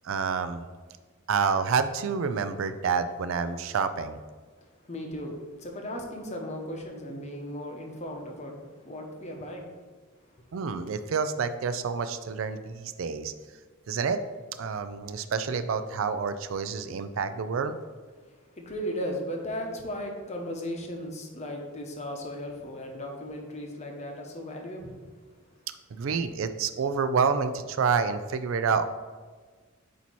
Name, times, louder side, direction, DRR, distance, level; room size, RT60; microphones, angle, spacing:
voice 1, 0.0-0.6 1.3-4.2 10.5-13.3 13.9-14.2 14.6-17.8 25.9-28.8, right 5 dB, 65° right, 11 dB, 0.4 m, -28 dB
voice 2, 4.9-9.7 18.6-25.0, equal, 30° left, 2 dB, 0.8 m, -36 dB
8.3 x 2.8 x 4.5 m, 1.5 s
head